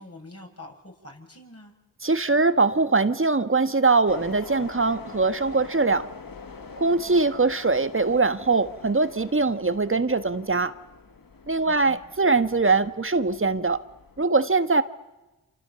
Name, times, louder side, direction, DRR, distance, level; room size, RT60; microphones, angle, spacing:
voice 1, 0.0-1.7 11.7-12.0, left 2 dB, 35° left, 0 dB, 7.4 m, -45 dB
voice 2, 2.0-6.1 6.8-10.7 11.5-13.8 14.2-14.8, right 3 dB, 30° right, 10 dB, 1.6 m, -22 dB
sound 1, 4.1-14.2, left 5 dB, 55° left, 2.0 m, -45 dB
28.5 x 27.0 x 7.1 m, 1.1 s
cardioid pair, 40°, 41 cm